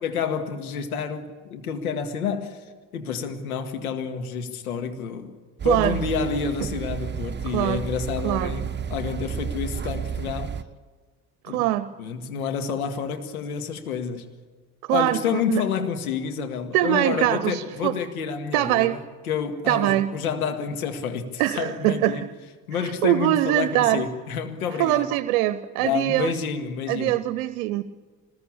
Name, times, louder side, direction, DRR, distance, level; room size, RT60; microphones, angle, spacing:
voice 1, 0.0-2.6 2.9-5.4 5.6-10.5 11.5-11.6 12.0-14.3 14.9-22.3 22.7-25.1 25.8-27.2, left 6 dB, 85° left, 1.9 m, -29 dB
sound 1, 5.6-10.6, right 7 dB, 25° right, 0.9 m, -31 dB
voice 2, 5.6-6.0 7.5-7.8 8.2-8.5 11.4-11.9 14.9-15.6 16.7-17.9 18.5-19.0 19.7-20.1 21.4-22.2 23.0-24.0 24.8-26.3 26.9-27.8, right 15 dB, 70° right, 0.8 m, -22 dB
25.5 x 20.0 x 8.7 m
hypercardioid pair, 55°, 42 cm